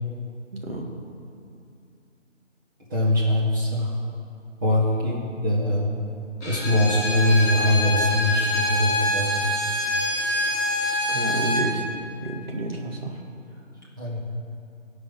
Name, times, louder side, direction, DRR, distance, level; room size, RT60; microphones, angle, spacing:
voice 1, 0.5-0.9 11.1-11.8 12.2-13.2, right 2 dB, 50° right, 0 dB, 1.9 m, -30 dB
voice 2, 2.9-3.9 4.6-5.9 6.4-9.3 14.0-14.2, left 1 dB, 15° right, -6 dB, 1.2 m, -22 dB
Bowed string instrument, 6.4-11.7, left 1 dB, ahead, 0.8 m, -25 dB
15.5 x 5.4 x 7.8 m, 2.6 s
figure-of-eight pair, 165°, 37 cm